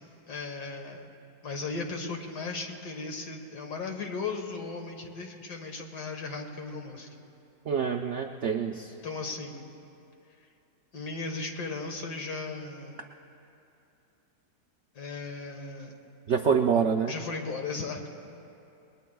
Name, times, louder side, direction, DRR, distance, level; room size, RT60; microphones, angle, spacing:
voice 1, 0.3-1.1 1.4-7.1 9.0-9.7 10.9-13.0 15.0-15.9 17.1-18.1, left 4 dB, 65° left, 3 dB, 2.0 m, -36 dB
voice 2, 7.7-8.9 16.3-17.1, right 6 dB, 75° right, 4 dB, 0.6 m, -26 dB
29.0 x 21.0 x 2.3 m, 2.8 s
omnidirectional pair, 2.0 m